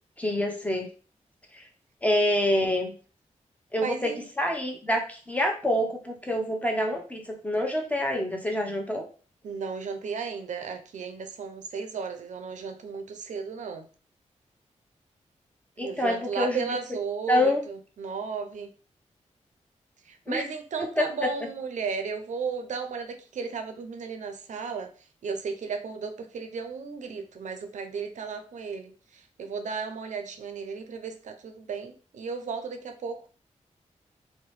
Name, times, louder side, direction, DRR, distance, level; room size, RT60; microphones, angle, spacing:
voice 1, 0.2-0.9 1.5-1.7 2.0-2.9 3.7-9.0 15.8-16.8 17.3-17.6 20.3-20.4 20.8-21.1, left 1 dB, 10° left, 1 dB, 0.7 m, -26 dB
voice 2, 3.8-4.2 9.4-13.9 15.8-18.7 20.1-24.9 25.2-33.2, right 5 dB, 75° right, 6 dB, 0.4 m, -34 dB
2.7 x 2.0 x 3.1 m, 0.38 s
cardioid pair, 65°, 13 cm